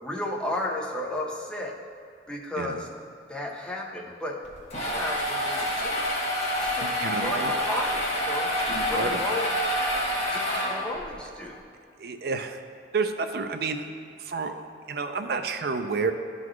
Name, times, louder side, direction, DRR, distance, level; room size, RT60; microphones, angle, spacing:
voice 1, 0.0-1.8 2.3-2.9 3.3-4.4 4.8-6.1 6.6-6.9 7.2-8.6 8.9-9.5 10.3-11.6, left 1 dB, 5° left, -2 dB, 0.6 m, -33 dB
sound 1, 4.4-11.1, left 1 dB, 35° left, 1.2 m, -27 dB
voice 2, 6.8-7.5 8.7-9.2 12.0-12.6 12.9-13.9 14.2-16.1, right 4 dB, 55° right, 7 dB, 0.4 m, -30 dB
11.5 x 3.9 x 3.1 m, 2.4 s
head